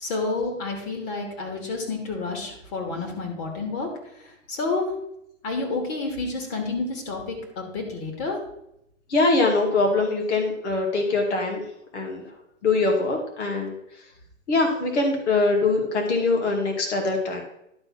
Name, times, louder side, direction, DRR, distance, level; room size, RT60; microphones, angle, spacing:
voice 1, 0.0-3.9 4.2-4.9 5.4-8.4, left 3 dB, 40° left, 2 dB, 2.8 m, -29 dB
voice 2, 9.1-11.6 11.9-12.2 12.6-13.7 14.5-17.4, left 3 dB, 60° left, 1 dB, 2.2 m, -23 dB
11.0 x 4.1 x 5.9 m, 0.79 s
hypercardioid pair, 140°, 39 cm